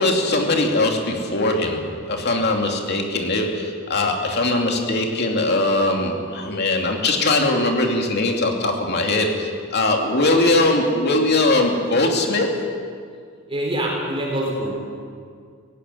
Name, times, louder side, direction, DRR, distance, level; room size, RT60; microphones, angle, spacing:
voice 1, 0.0-12.5, left 2 dB, 55° left, 2 dB, 2.7 m, -21 dB
voice 2, 13.5-14.7, right 1 dB, 25° right, -1 dB, 4.1 m, -24 dB
17.0 x 17.0 x 9.8 m, 2.1 s
head